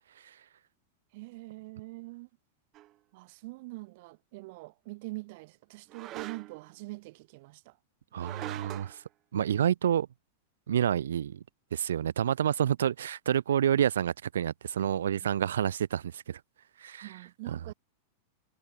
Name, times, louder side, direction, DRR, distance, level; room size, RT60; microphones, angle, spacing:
voice 1, 1.1-2.3 3.1-7.8 15.1-15.3 17.0-17.7, right 23 dB, 60° right, 1.6 m, -44 dB
sound 1, 2.7-2.9 5.9-6.7 8.1-9.0, right 15 dB, 40° right, 1.8 m, -42 dB
voice 2, 8.1-9.0 9.3-10.1 10.7-11.4 11.7-16.4 16.8-17.1, right 9 dB, 85° right, 0.6 m, -28 dB
hypercardioid pair, 115°, 0 cm